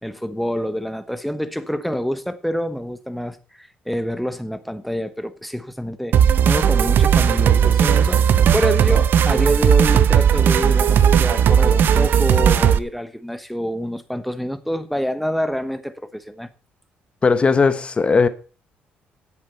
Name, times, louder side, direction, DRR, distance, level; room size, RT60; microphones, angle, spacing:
voice 1, 0.0-16.5, equal, ahead, 1.1 m, -27 dB
sound 1, 6.1-12.8, right 8 dB, 60° right, 0.7 m, -16 dB
voice 2, 17.2-18.3, left 4 dB, 30° left, 1.1 m, -17 dB
10.0 x 8.4 x 5.5 m
cardioid pair, 105°, 4 cm